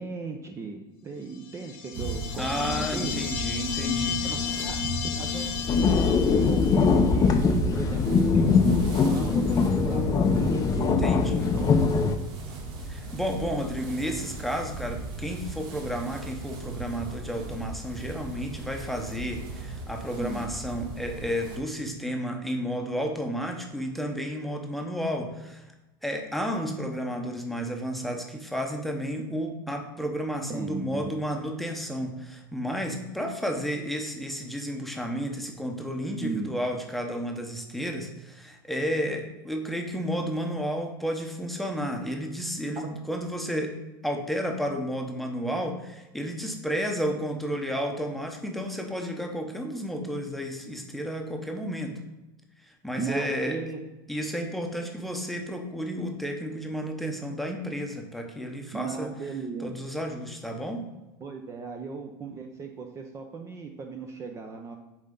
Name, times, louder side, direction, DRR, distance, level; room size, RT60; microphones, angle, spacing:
voice 1, 0.0-3.2 4.2-4.8 5.1-11.0 11.4-11.8 20.2-20.4 30.5-31.1 36.2-36.5 53.0-53.8 58.7-59.7 61.2-64.8, right 4 dB, 25° right, 3 dB, 0.7 m, -37 dB
sound 1, 1.5-6.9, left 8 dB, 50° left, 0.9 m, -32 dB
sound 2, 1.9-21.6, right 2 dB, 50° right, 1.6 m, -36 dB
voice 2, 2.4-4.3 10.8-11.5 12.9-25.6 26.0-43.7 44.0-52.0 52.6-53.6 54.1-59.1 59.6-60.8, equal, ahead, 2 dB, 0.9 m, -32 dB
sound 3, 5.7-12.2, left 5 dB, 30° left, 0.6 m, -22 dB
7.3 x 4.3 x 3.9 m, 1.0 s
supercardioid pair, 120°, 12 cm